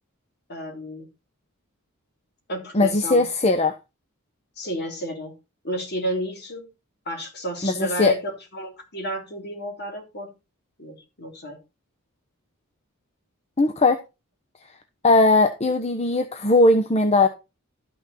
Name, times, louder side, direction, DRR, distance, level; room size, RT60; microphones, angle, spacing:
voice 1, 0.5-1.1 2.5-3.3 4.6-5.3 5.6-6.7 7.0-10.3 10.8-11.6, right 1 dB, 50° left, 3.2 m, -32 dB
voice 2, 2.7-3.7 7.6-8.1 13.6-14.0 15.0-17.3, left 2 dB, 30° left, 0.9 m, -19 dB
12.5 x 6.1 x 4.2 m
head